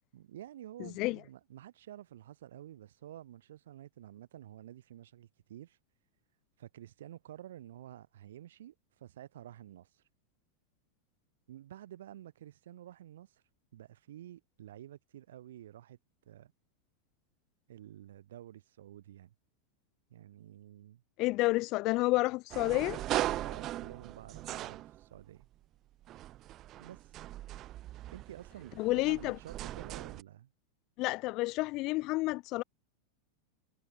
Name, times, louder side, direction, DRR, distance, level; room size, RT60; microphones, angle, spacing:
voice 1, 0.1-5.8 6.6-10.0 11.5-13.4 13.7-16.0 16.2-16.5 17.7-19.3 20.1-21.0 23.4-25.5 26.8-27.1 28.1-30.5, right 12 dB, 90° right, 3.0 m, -50 dB
voice 2, 21.2-23.0 28.8-29.4 31.0-32.6, left 21 dB, 40° left, 0.6 m, -30 dB
sound 1, 22.5-25.4 26.0-30.2, right 14 dB, 30° right, 0.7 m, -39 dB
supercardioid pair, 155°, 0 cm